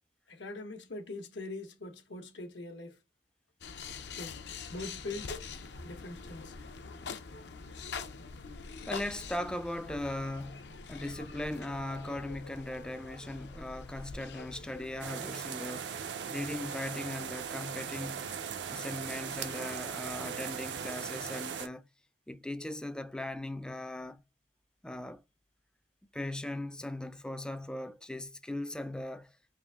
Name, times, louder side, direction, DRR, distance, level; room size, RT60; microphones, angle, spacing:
voice 1, 0.3-3.0 4.0-4.4 4.7-5.5 5.8-6.5, left 2 dB, 85° left, 1.0 m, -42 dB
sound 1, 3.6-15.1, left 5 dB, 70° left, 0.6 m, -44 dB
voice 2, 8.9-16.0 16.3-18.3 18.7-21.9 22.3-24.2 24.8-25.2 26.1-29.3, left 1 dB, 5° left, 0.3 m, -39 dB
sound 2, 15.0-21.7, right 7 dB, 75° right, 0.5 m, -39 dB
3.7 x 2.6 x 3.4 m
head